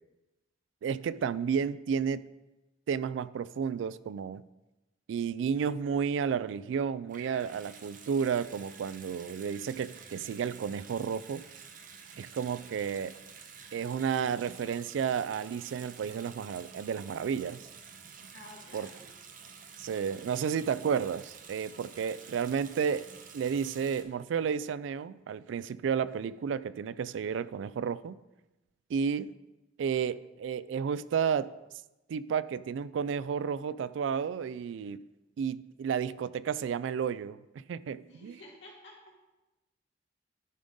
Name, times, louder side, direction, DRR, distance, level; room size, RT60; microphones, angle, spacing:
voice 1, 0.8-2.3 2.9-4.5 5.1-11.4 12.2-13.1 13.7-17.6 18.7-18.9 19.8-28.2 28.9-29.3 29.8-31.5 32.1-35.0 35.4-37.4 37.7-38.3, right 7 dB, 80° right, 18 dB, 0.3 m, -32 dB
Water tap faucet / Sink (filling or washing) / Bathtub (filling or washing), 7.1-24.0, right 6 dB, 45° right, 0.7 m, -50 dB
voice 2, 18.3-19.1 38.1-39.1, left 1 dB, 70° left, -2 dB, 2.0 m, -51 dB
10.5 x 3.8 x 5.2 m, 1.0 s
head